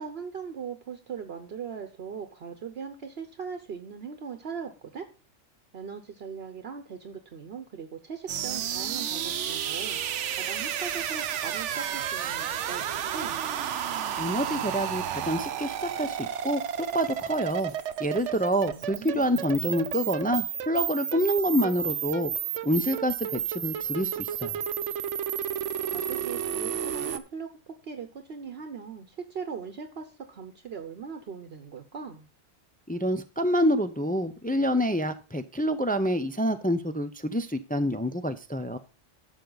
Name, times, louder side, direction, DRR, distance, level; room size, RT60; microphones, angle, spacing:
voice 1, 0.0-5.1 5.7-10.0 10.3-13.4 18.6-19.3 25.8-32.3, right 6 dB, 60° right, 8 dB, 1.1 m, -40 dB
sound 1, 8.3-27.2, right 9 dB, 85° right, 1.0 m, -32 dB
voice 2, 14.2-16.6 16.9-17.7 18.0-22.3 22.6-24.6 32.9-38.8, equal, 15° left, 9 dB, 0.3 m, -27 dB
11.5 x 6.8 x 3.9 m, 0.32 s
omnidirectional pair, 1.2 m